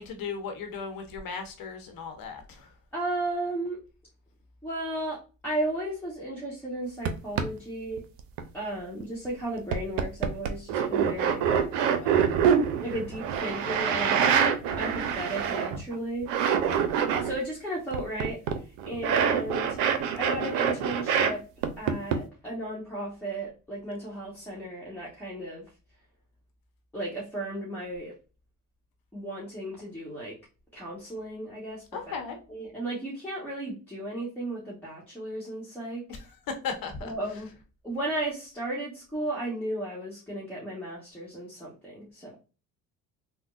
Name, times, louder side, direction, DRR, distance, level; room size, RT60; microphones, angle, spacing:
voice 1, 0.0-2.7 31.9-32.4 36.6-37.1, left 5 dB, 60° left, 5 dB, 0.9 m, -36 dB
voice 2, 2.9-3.8 4.6-5.2 5.4-8.0 8.5-11.5 12.0-12.4 12.8-16.3 17.2-18.4 18.9-19.8 20.2-21.4 21.8-25.6 26.9-28.1 29.1-30.4 30.7-32.0 32.5-36.0 37.0-37.5 37.8-42.4, right 1 dB, 5° left, -6 dB, 1.1 m, -34 dB
sound 1, 7.0-7.1 7.4-7.5 8.0-8.4 9.0-9.1 9.7-16.0 16.2-17.4 17.9-21.3 21.6-22.2, right 7 dB, 80° right, 0.6 m, -25 dB
3.5 x 2.1 x 2.4 m, 0.34 s
supercardioid pair, 70°, 40 cm